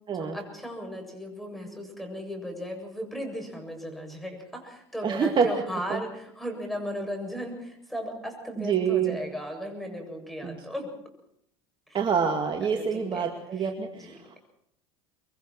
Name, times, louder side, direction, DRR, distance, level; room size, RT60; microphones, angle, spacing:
voice 1, 0.1-10.9 11.9-12.0 12.6-14.2, equal, ahead, 3 dB, 7.4 m, -36 dB
voice 2, 5.0-5.5 5.9-6.0 8.6-9.2 10.4-10.6 11.9-14.4, right 6 dB, 35° right, 3 dB, 2.2 m, -26 dB
25.0 x 23.0 x 4.5 m, 0.73 s
supercardioid pair, 95°, 15 cm